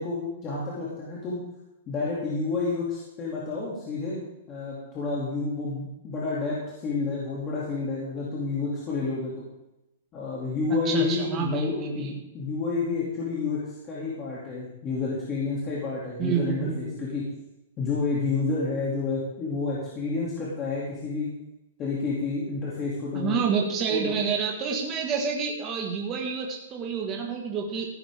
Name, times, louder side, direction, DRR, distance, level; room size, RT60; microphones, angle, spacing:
voice 1, 0.0-1.4 1.9-4.2 4.5-9.4 10.1-17.2 17.8-21.3 21.8-23.4 23.9-24.1, left 4 dB, 15° left, -7 dB, 2.7 m, -30 dB
voice 2, 10.9-12.1 16.2-17.0 23.1-27.9, right 6 dB, 20° right, 0 dB, 1.8 m, -28 dB
15.5 x 12.0 x 3.7 m, 0.92 s
hypercardioid pair, 175°, 0 cm